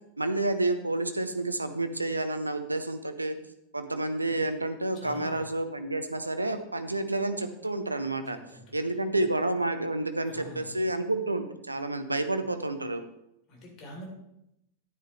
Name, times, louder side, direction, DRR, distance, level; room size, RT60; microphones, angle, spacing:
voice 1, 0.2-3.4 3.7-8.4 8.7-13.0, right 2 dB, 85° right, 9 dB, 0.7 m, -29 dB
voice 2, 4.9-5.4 8.5-9.2 10.2-10.9 13.5-14.1, equal, 35° left, -1 dB, 3.5 m, -46 dB
10.0 x 9.8 x 3.2 m, 0.82 s
figure-of-eight pair, 90°, 0 cm